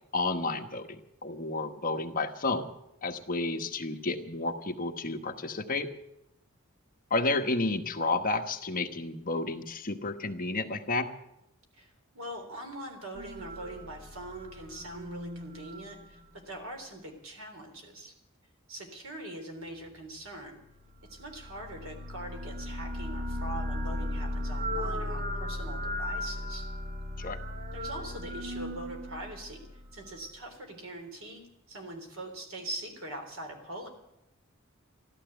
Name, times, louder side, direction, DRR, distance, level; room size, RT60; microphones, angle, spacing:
voice 1, 0.1-2.7 3.0-5.9 7.1-11.1 27.2-27.4, left 3 dB, 45° left, 6 dB, 1.2 m, -31 dB
voice 2, 11.7-18.2 18.7-20.6 21.1-26.7 27.7-33.9, right 1 dB, 70° right, 4 dB, 3.6 m, -42 dB
sound 1, 13.1-16.7 21.0-30.2, left 1 dB, 45° right, 1.5 m, -37 dB
14.5 x 12.5 x 7.9 m, 0.85 s
head